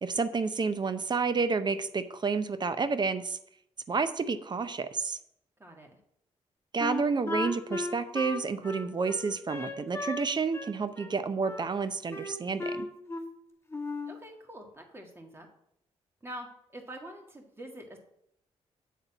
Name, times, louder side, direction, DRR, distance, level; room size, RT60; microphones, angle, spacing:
voice 1, 0.0-3.4 3.9-5.2 6.7-12.9, right 4 dB, 40° right, 12 dB, 0.7 m, -30 dB
voice 2, 5.6-5.9 14.1-15.5 16.2-16.5 16.7-18.0, right 1 dB, 20° right, 2 dB, 1.9 m, -45 dB
Wind instrument woodwind instrument, 6.8-10.3 10.5-11.7 12.1-13.4 13.7-14.2, left 2 dB, 20° left, 1.1 m, -36 dB
8.4 x 3.9 x 5.9 m, 0.75 s
cardioid pair, 65°, 12 cm